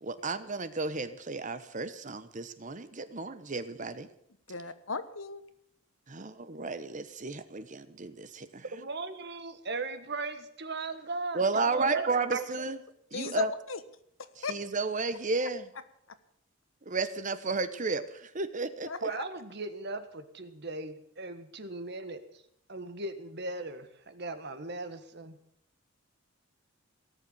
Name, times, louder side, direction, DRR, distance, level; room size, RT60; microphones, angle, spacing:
voice 1, 0.0-4.1 6.1-8.6 11.3-12.8 13.1-13.5 14.4-15.7 16.8-18.9, right 3 dB, 40° right, 12 dB, 1.0 m, -33 dB
voice 2, 4.5-5.4 13.1-13.8 14.4-14.5 18.8-19.2, left 4 dB, 75° left, 11 dB, 1.3 m, -36 dB
voice 3, 8.7-12.4 19.0-22.2 22.7-25.4, right 3 dB, 55° right, 9 dB, 1.6 m, -37 dB
18.5 x 6.9 x 10.0 m, 0.73 s
head